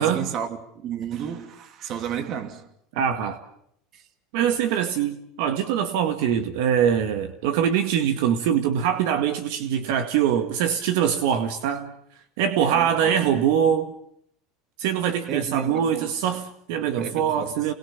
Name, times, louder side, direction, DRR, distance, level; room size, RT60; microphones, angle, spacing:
voice 1, 0.0-2.7 3.9-4.0 4.4-4.6 12.7-13.3 15.3-16.1 16.9-17.6, right 8 dB, 45° right, 2.8 m, -33 dB
voice 2, 3.0-3.4 4.3-11.9 12.4-13.9 14.8-17.7, right 8 dB, 75° right, 1.9 m, -23 dB
29.5 x 21.5 x 7.3 m
supercardioid pair, 130°, 0 cm